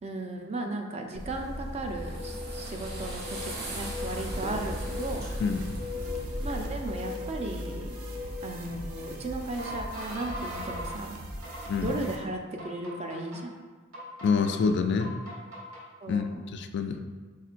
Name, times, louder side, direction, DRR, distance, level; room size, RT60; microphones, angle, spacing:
voice 1, 0.0-5.3 6.4-8.0 8.4-11.2 11.8-13.5 16.0-16.2, right 2 dB, 30° right, 3 dB, 0.4 m, -36 dB
sound 1, 1.1-6.7, equal, 50° right, 1.0 m, -37 dB
sound 2, 1.9-11.0 11.4-12.1 12.6-13.4 13.9-14.5 15.0-15.8, left 3 dB, 70° right, 1.3 m, -41 dB
sound 3, 4.2-12.2, equal, 85° right, 0.7 m, -40 dB
voice 2, 5.4-5.7 11.7-11.9 14.2-15.2 16.1-16.3 16.5-17.0, left 5 dB, 55° left, 7 dB, 0.3 m, -26 dB
5.6 x 3.6 x 2.5 m, 1.4 s
head